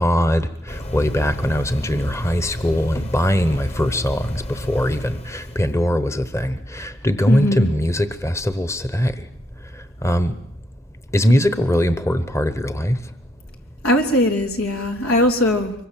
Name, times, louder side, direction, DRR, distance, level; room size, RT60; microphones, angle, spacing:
voice 1, 0.0-9.1 10.0-10.3 11.1-13.0, equal, 15° left, 1.0 m, -21 dB
sound 1, 0.7-5.7, left 1 dB, 30° left, 1.4 m, -32 dB
voice 2, 7.3-7.7 13.8-15.7, left 1 dB, 85° left, 3.4 m, -19 dB
25.5 x 23.0 x 7.6 m
head